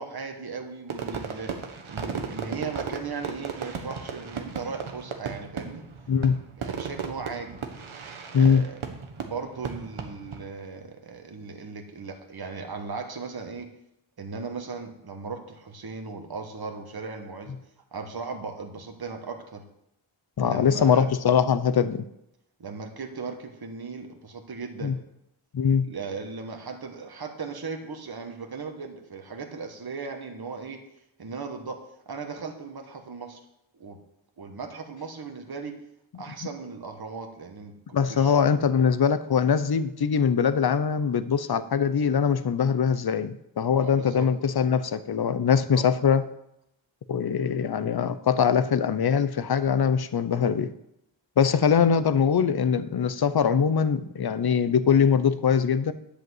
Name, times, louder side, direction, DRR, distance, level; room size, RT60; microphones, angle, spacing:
voice 1, 0.0-1.5 1.9-5.8 6.6-7.6 8.3-8.8 9.1-13.7 14.2-17.5 17.9-19.6 20.4-21.1 22.6-25.0 25.8-30.8 31.2-31.8 32.1-33.4 33.7-34.0 34.4-35.7 36.2-38.3 43.8-44.3 45.7-45.9, right 4 dB, 50° right, 4 dB, 1.4 m, -37 dB
Fireworks, 0.9-10.4, right 6 dB, 90° right, 1.3 m, -36 dB
voice 2, 6.1-6.4 8.3-8.6 20.4-22.0 24.8-25.0 25.5-25.9 37.9-46.3 47.1-50.7 51.4-55.9, left 7 dB, 55° left, 13 dB, 0.7 m, -22 dB
10.5 x 5.1 x 7.9 m, 0.80 s
wide cardioid pair, 115°, 47 cm